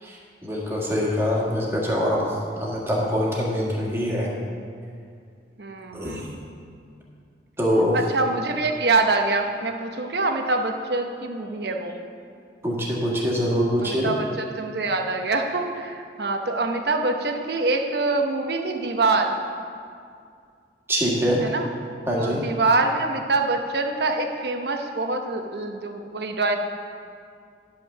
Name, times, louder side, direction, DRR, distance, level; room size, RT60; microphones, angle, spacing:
voice 1, 0.0-2.2 2.6-4.3 5.9-6.3 7.6-8.0 12.6-14.1 20.9-21.4 22.1-22.4, equal, 15° right, -4 dB, 1.7 m, -24 dB
voice 2, 5.6-6.3 7.9-11.9 13.8-19.4 21.4-21.7 22.2-26.6, right 3 dB, 65° right, 4 dB, 0.9 m, -25 dB
10.5 x 5.7 x 6.6 m, 2.3 s
head